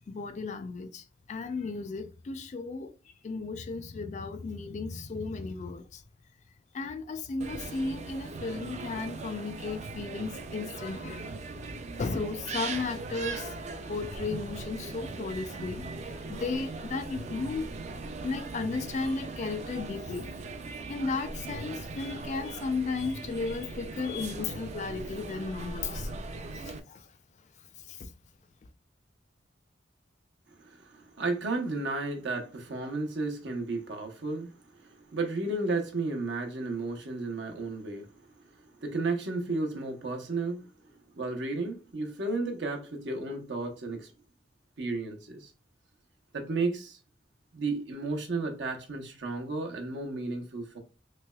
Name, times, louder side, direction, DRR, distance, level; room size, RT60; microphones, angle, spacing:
voice 1, 0.1-2.9 3.2-6.0 6.7-11.4 12.0-13.5 13.9-15.9 16.3-17.7 18.2-20.3 20.6-26.2 26.5-27.1 27.9-28.1, left 4 dB, 40° left, 0.3 m, -35 dB
sound 1, 7.4-26.8, right 3 dB, 40° right, 0.3 m, -39 dB
voice 2, 30.6-38.1 38.8-40.6 41.2-44.1 44.8-45.5 46.3-47.0 47.5-50.8, right 3 dB, 75° right, 0.8 m, -33 dB
3.2 x 3.1 x 2.2 m
head